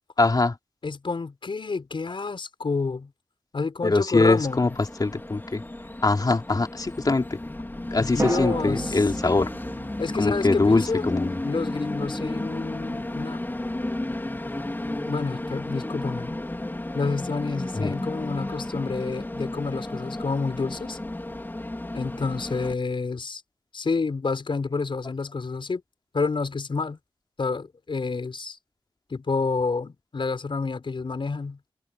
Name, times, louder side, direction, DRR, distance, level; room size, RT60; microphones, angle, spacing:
voice 1, 0.2-0.5 3.8-4.7 5.0-5.6 6.0-7.4 7.9-9.5 10.2-11.4 17.7-17.9, left 3 dB, 50° left, 2.9 m, -22 dB
voice 2, 0.8-3.1 3.5-4.7 8.0-9.0 10.0-11.1 11.4-13.4 15.0-16.4 16.9-21.0 21.9-23.4 23.7-25.8 26.1-27.0 27.4-28.6 29.1-31.6, left 4 dB, 70° left, 5.6 m, -29 dB
Train, 4.3-22.7, left 1 dB, 25° left, 3.5 m, -33 dB
sound 1, 4.7-5.8 8.2-12.2 12.4-12.5, right 2 dB, 35° right, 3.6 m, -36 dB
wide cardioid pair, 70°, 9 cm